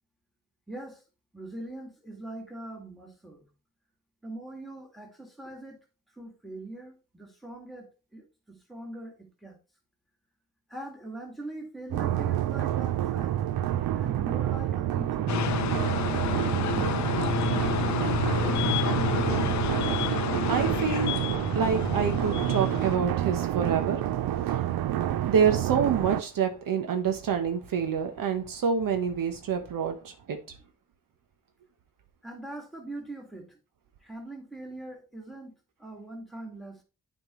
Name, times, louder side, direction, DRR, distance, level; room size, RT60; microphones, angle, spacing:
voice 1, 0.7-1.0 1.3-3.5 4.2-5.8 6.1-9.6 10.7-13.3 14.0-15.4 15.8-17.5 32.2-33.6 34.0-36.8, right 2 dB, ahead, 2.1 m, -42 dB
sound 1, 11.9-26.2, right 12 dB, 85° right, 0.6 m, -28 dB
sound 2, 15.3-23.0, left 9 dB, 55° left, 0.6 m, -30 dB
voice 2, 20.5-21.2 21.5-24.0 24.5-24.7 25.2-30.4, right 6 dB, 70° right, 1.1 m, -27 dB
8.7 x 4.5 x 3.0 m
cardioid pair, 80°, 35 cm